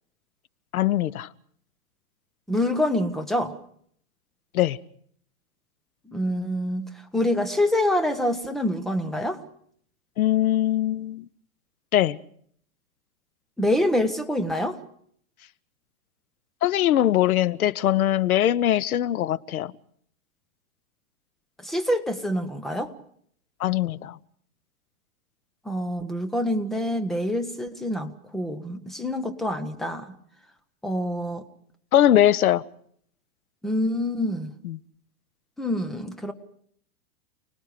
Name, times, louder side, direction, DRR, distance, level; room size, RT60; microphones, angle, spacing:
voice 1, 0.7-1.3 4.5-4.8 10.2-11.2 11.9-12.2 16.6-19.7 23.6-24.2 31.9-32.6 34.6-34.8, left 12 dB, 75° left, 22 dB, 1.0 m, -21 dB
voice 2, 2.5-3.5 6.1-9.4 13.6-14.8 21.6-22.9 25.6-30.1 30.8-31.4 33.6-34.5 35.6-36.3, left 1 dB, ahead, 8 dB, 1.0 m, -26 dB
29.5 x 19.5 x 5.0 m, 0.64 s
hypercardioid pair, 155°, 44 cm